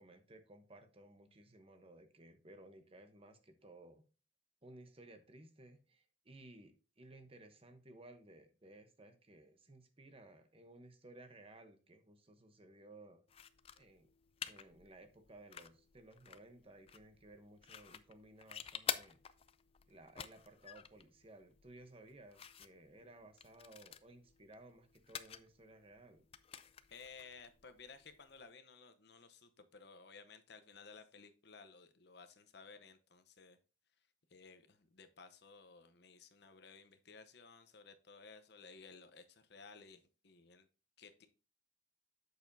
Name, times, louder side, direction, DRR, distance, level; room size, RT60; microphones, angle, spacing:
voice 1, 0.0-4.0 4.6-13.2 13.8-14.1 14.4-19.2 19.9-26.3, right 2 dB, 30° right, 0.9 m, -58 dB
sound 1, 13.3-28.4, left 8 dB, 30° left, 0.4 m, -50 dB
voice 2, 26.9-33.6 34.3-40.7 41.0-41.3, left 4 dB, 60° left, 0.9 m, -57 dB
8.1 x 6.8 x 2.7 m
head